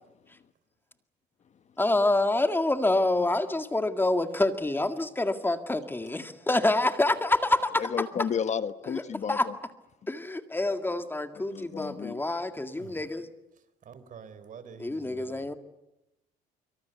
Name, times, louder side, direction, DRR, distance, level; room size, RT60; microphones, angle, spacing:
voice 1, 1.8-7.9 9.3-9.5 10.1-13.3 14.8-15.5, left 2 dB, 10° left, 8 dB, 1.9 m, -27 dB
voice 2, 7.8-9.5 11.4-12.2, left 7 dB, 45° left, 12 dB, 1.2 m, -32 dB
voice 3, 13.5-15.6, right 6 dB, 50° right, 13 dB, 3.9 m, -48 dB
25.5 x 24.5 x 8.2 m, 0.91 s
cardioid pair, 110°, 17 cm